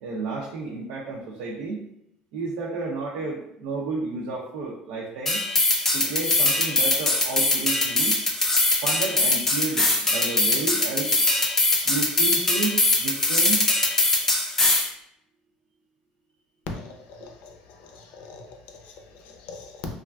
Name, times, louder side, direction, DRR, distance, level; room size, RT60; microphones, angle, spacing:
voice 1, 0.0-1.8 2.3-5.4 5.9-8.2 8.8-11.1 11.8-13.6, right 3 dB, 80° right, -4 dB, 0.5 m, -31 dB
sound 1, 5.3-14.9, left 2 dB, 15° left, 0.4 m, -22 dB
voice 2, 16.7-19.9, left 3 dB, 60° left, 2 dB, 0.6 m, -42 dB
3.2 x 2.4 x 2.2 m, 0.77 s
cardioid pair, 155°, 3 cm